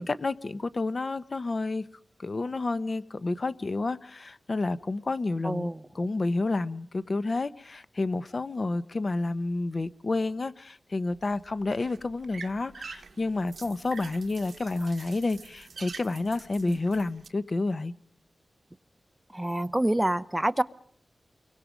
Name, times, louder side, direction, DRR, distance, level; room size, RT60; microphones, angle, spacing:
voice 1, 0.0-1.8 2.2-17.9, left 3 dB, 45° left, 1.0 m, -30 dB
voice 2, 5.4-5.8 16.7-16.8 19.3-20.6, right 1 dB, 10° right, 0.9 m, -27 dB
sound 1, 11.1-17.3, right 5 dB, 70° right, 1.3 m, -46 dB
29.5 x 23.5 x 5.2 m
wide cardioid pair, 100°, 0 cm